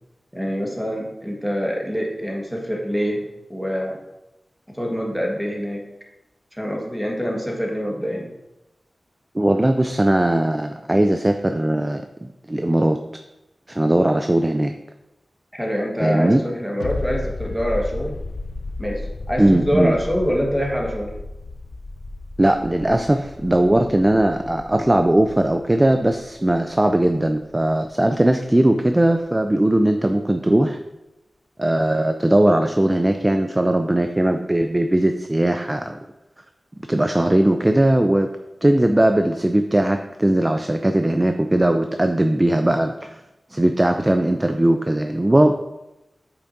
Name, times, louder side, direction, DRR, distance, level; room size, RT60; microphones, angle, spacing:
voice 1, 0.3-4.0 4.7-5.8 6.5-8.3 15.5-18.1 18.8-21.1, equal, ahead, -1 dB, 1.4 m, -25 dB
voice 2, 9.3-13.0 13.7-14.7 16.0-16.4 19.4-19.9 22.4-30.8 31.6-36.0 36.9-38.3 38.6-43.2 43.5-45.5, right 1 dB, 20° right, 7 dB, 0.3 m, -19 dB
sound 1, 16.8-28.1 28.4-28.5, left 2 dB, 80° left, 0.5 m, -34 dB
8.3 x 5.8 x 2.6 m, 0.94 s
wide cardioid pair, 110°, 0 cm